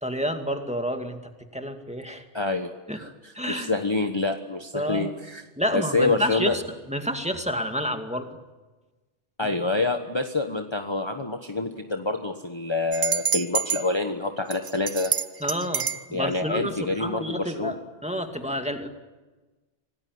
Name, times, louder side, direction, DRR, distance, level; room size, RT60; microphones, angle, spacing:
voice 1, 0.0-1.2 1.5-2.2 2.9-3.0 3.3-3.7 4.7-5.1 5.6-6.5 6.9-8.3 15.4-17.8 18.0-18.9, equal, 5° right, 5 dB, 2.3 m, -29 dB
voice 2, 2.3-5.4 5.7-6.6 9.4-15.1 16.1-17.7, left 3 dB, 25° left, 5 dB, 1.3 m, -27 dB
sound 1, 12.9-13.8 14.5-16.1, right 7 dB, 80° right, 1.5 m, -26 dB
26.5 x 18.5 x 9.5 m, 1.2 s
omnidirectional pair, 1.2 m